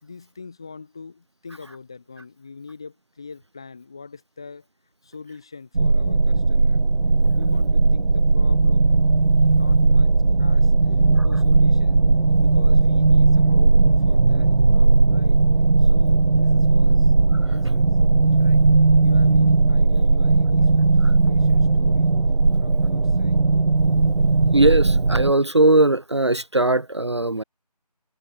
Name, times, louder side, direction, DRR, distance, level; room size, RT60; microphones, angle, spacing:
voice 1, 0.0-4.7 5.0-6.8 7.3-9.1 9.5-12.1 12.4-15.4 15.8-17.1 17.4-17.9 18.4-18.6 19.0-22.1 22.6-23.5, left 4 dB, 5° left, 2.0 m, -42 dB
sound 1, 5.7-25.3, right 3 dB, 90° right, 1.1 m, -17 dB
voice 2, 24.5-27.4, right 2 dB, 45° right, 1.0 m, -19 dB
figure-of-eight pair, 180°, 21 cm